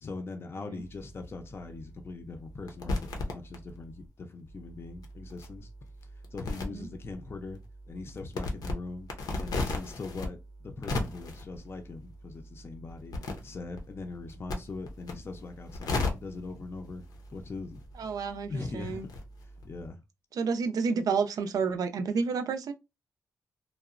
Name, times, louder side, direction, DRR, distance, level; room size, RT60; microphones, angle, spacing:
voice 1, 0.0-5.7 6.3-7.6 7.9-9.1 9.4-10.4 10.6-13.2 13.4-17.0 17.3-18.2 18.5-19.1 19.6-20.0, left 3 dB, 40° left, 0.4 m, -41 dB
sound 1, 0.8-4.1 4.4-19.9, left 2 dB, 80° left, 0.6 m, -38 dB
voice 2, 18.0-19.1 20.3-22.7, right 5 dB, 75° right, 0.4 m, -30 dB
2.8 x 2.0 x 2.4 m
cardioid pair, 95°, 6 cm